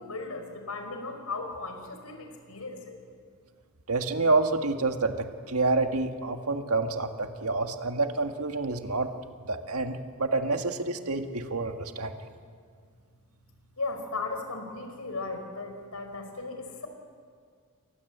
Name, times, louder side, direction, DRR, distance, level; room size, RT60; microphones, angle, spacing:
voice 1, 0.0-3.0 13.8-16.9, left 3 dB, 80° left, 6 dB, 4.6 m, -36 dB
voice 2, 3.9-9.1 9.5-12.1, right 3 dB, 75° right, 6 dB, 1.8 m, -28 dB
29.5 x 23.5 x 8.2 m, 2.1 s
head